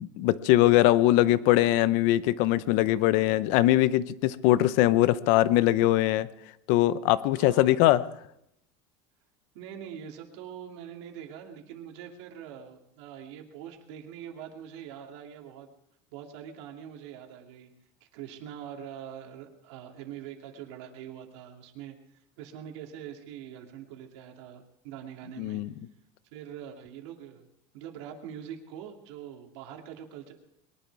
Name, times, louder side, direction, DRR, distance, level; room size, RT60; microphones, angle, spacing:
voice 1, 0.0-6.3 6.7-8.0 25.4-25.7, left 15 dB, 60° left, 16 dB, 0.8 m, -22 dB
voice 2, 7.3-7.8 9.5-15.7 16.1-17.7 18.1-22.0 22.4-25.6 26.3-27.5 27.7-30.3, right 9 dB, 75° right, 2 dB, 2.6 m, -43 dB
22.0 x 11.5 x 4.7 m, 0.78 s
cardioid pair, 160°, 15 cm